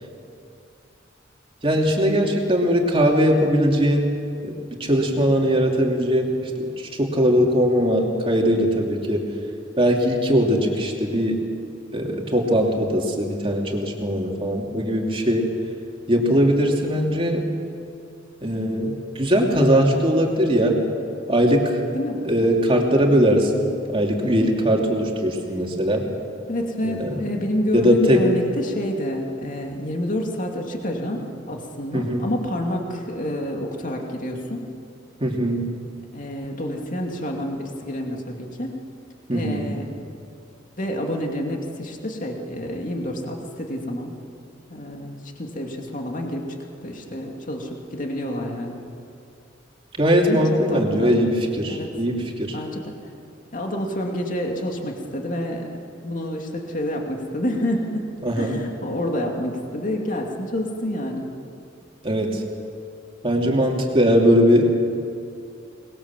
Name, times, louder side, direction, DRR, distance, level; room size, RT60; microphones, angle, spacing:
voice 1, 1.6-4.1 4.4-6.3 6.6-9.3 9.8-11.4 11.9-15.5 16.1-17.5 18.4-20.8 21.3-21.8 22.2-26.0 26.8-27.2 27.7-28.2 31.9-32.3 35.2-35.7 39.3-39.7 50.0-52.6 58.2-58.6 62.0-62.4 63.2-64.7, equal, 30° right, 0 dB, 2.9 m, -20 dB
voice 2, 26.5-34.7 36.1-38.8 39.3-39.9 40.8-44.1 44.7-48.8 50.3-51.1 51.7-51.9 52.5-52.9 53.5-58.0 58.4-61.3 63.3-63.5, equal, 40° left, 1 dB, 2.5 m, -28 dB
24.5 x 21.0 x 7.5 m, 2.5 s
head